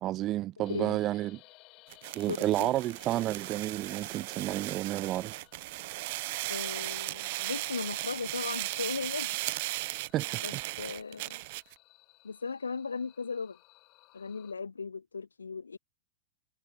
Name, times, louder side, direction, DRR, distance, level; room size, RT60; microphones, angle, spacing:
voice 1, 0.0-1.4 2.1-5.3 10.1-10.6, right 15 dB, 35° right, 0.3 m, -31 dB
voice 2, 0.6-1.0 2.3-2.7 6.5-9.3 10.4-11.4 12.2-13.6 14.1-15.8, left 5 dB, 75° left, 0.5 m, -37 dB
sound 1, 0.6-14.5, left 22 dB, 40° left, 6.3 m, -60 dB
sound 2, 1.9-11.7, right 21 dB, 50° right, 1.3 m, -37 dB
figure-of-eight pair, 90°, 0 cm